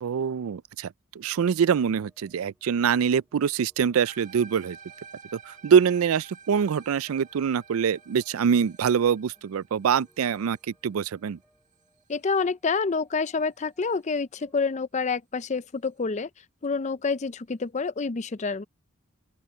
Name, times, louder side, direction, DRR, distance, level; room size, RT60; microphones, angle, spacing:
voice 1, 0.0-4.8 5.6-10.6 10.8-11.4, right 7 dB, 85° right, 0.4 m, -24 dB
sound 1, 1.2-12.0 12.4-14.8, equal, ahead, 4.8 m, -65 dB
sound 2, 4.0-12.4, right 5 dB, 35° right, 1.7 m, -51 dB
voice 2, 12.1-16.3 16.6-18.6, left 4 dB, 35° left, 0.5 m, -28 dB
open air
head